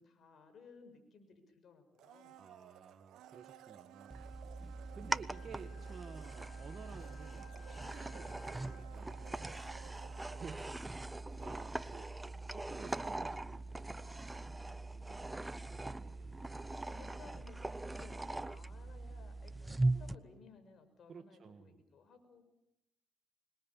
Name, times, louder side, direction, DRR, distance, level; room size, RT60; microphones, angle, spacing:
voice 1, 0.0-2.4 11.3-11.5 16.8-22.4, left 4 dB, 60° left, 8 dB, 6.5 m, -60 dB
Domestic sounds home sounds, 2.0-11.9 12.2-12.3, right 12 dB, 85° right, 1.0 m, -57 dB
voice 2, 2.4-4.2 4.9-9.5 10.2-11.0 11.4-14.3 14.9-15.4 15.8-16.4 21.1-21.8, right 6 dB, 50° right, 5 dB, 1.6 m, -54 dB
sound 1, 4.1-20.2, right 2 dB, 15° right, 0.9 m, -41 dB
Wind instrument woodwind instrument, 5.3-9.0, left 11 dB, 90° left, 2.0 m, -62 dB
26.0 x 22.0 x 7.3 m, 0.85 s
cardioid pair, 90°, 0 cm